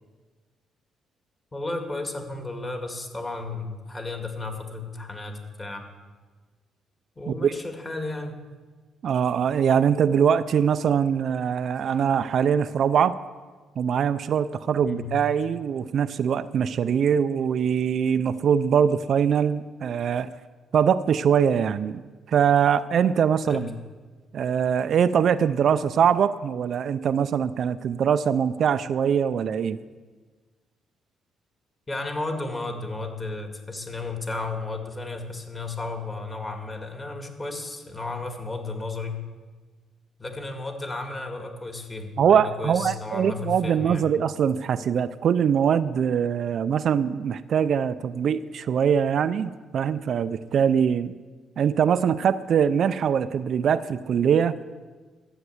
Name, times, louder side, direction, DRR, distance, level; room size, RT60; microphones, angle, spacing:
voice 1, 1.5-5.9 7.2-8.4 14.8-15.2 23.4-23.7 31.9-39.2 40.2-44.1, left 3 dB, 25° left, 4 dB, 2.0 m, -33 dB
voice 2, 9.0-13.2 13.8-20.3 20.7-22.0 22.3-23.7 24.3-29.8 42.2-51.1 51.6-54.5, right 8 dB, 60° right, 13 dB, 0.4 m, -22 dB
12.0 x 8.1 x 8.0 m, 1.4 s
cardioid pair, 105°, 0 cm